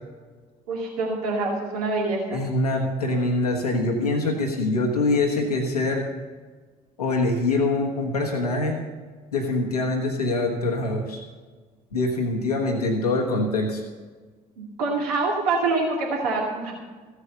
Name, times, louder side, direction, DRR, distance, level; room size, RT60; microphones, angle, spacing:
voice 1, 0.7-2.4 14.6-16.7, right 3 dB, 80° right, -2 dB, 2.4 m, -25 dB
voice 2, 2.3-6.0 7.0-8.8 9.3-11.2 11.9-13.8, left 2 dB, 90° left, 0 dB, 1.4 m, -24 dB
14.5 x 8.1 x 6.8 m, 1.4 s
figure-of-eight pair, 50°, 19 cm